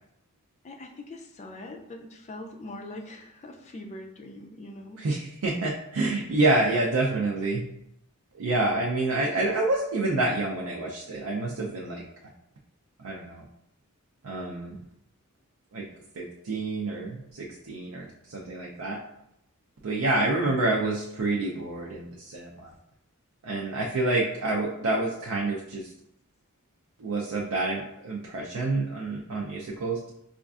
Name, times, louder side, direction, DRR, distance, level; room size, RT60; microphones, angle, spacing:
voice 1, 0.6-5.0 6.3-6.4 6.8-6.9, left 2 dB, 30° left, 2 dB, 0.4 m, -42 dB
voice 2, 5.0-7.6 8.3-12.0 13.0-13.5 14.2-14.8 15.7-15.9 16.2-19.0 19.8-22.7 23.4-25.9 27.0-30.0, right 2 dB, 75° right, -2 dB, 0.5 m, -28 dB
5.1 x 2.4 x 2.4 m, 0.78 s
head